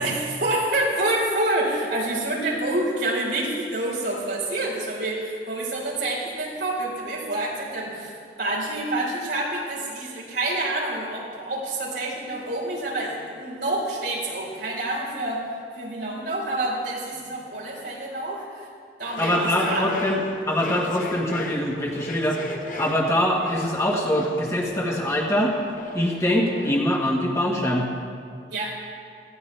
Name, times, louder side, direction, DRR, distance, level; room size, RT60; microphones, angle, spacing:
voice 1, 0.0-15.4 15.7-18.7 19.0-19.9 28.5-28.8, right 2 dB, 90° right, -5 dB, 4.4 m, -27 dB
sound 1, 19.0-26.8, left 2 dB, 45° left, 1.0 m, -37 dB
voice 2, 19.2-20.2 20.5-22.4 22.8-25.5 25.9-27.9, left 1 dB, 15° left, -1 dB, 1.5 m, -23 dB
18.5 x 15.0 x 3.4 m, 2.2 s
head